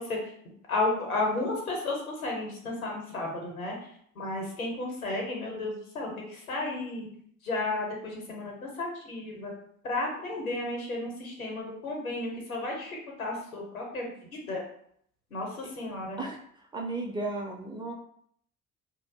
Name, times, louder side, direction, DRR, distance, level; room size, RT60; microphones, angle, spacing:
voice 1, 0.7-3.8 4.2-7.1 7.4-9.5 9.8-14.6 15.3-16.2, left 2 dB, 85° left, 0 dB, 0.8 m, -33 dB
voice 2, 16.7-17.9, right 2 dB, 10° right, -1 dB, 0.4 m, -34 dB
2.4 x 2.1 x 3.4 m, 0.66 s
figure-of-eight pair, 50°, 42 cm